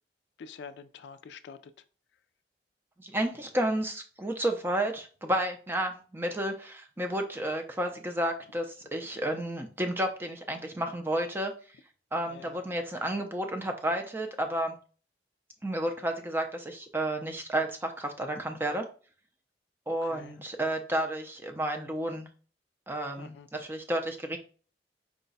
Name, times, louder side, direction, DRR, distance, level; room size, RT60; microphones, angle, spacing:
voice 1, 0.4-1.6 12.3-12.6 19.9-20.3 23.2-23.5, left 6 dB, 75° left, 0.3 m, -46 dB
voice 2, 3.0-11.8 12.1-14.8 15.6-18.9 19.9-22.3 22.9-24.4, right 1 dB, 15° right, 0.5 m, -31 dB
4.7 x 2.2 x 3.9 m
head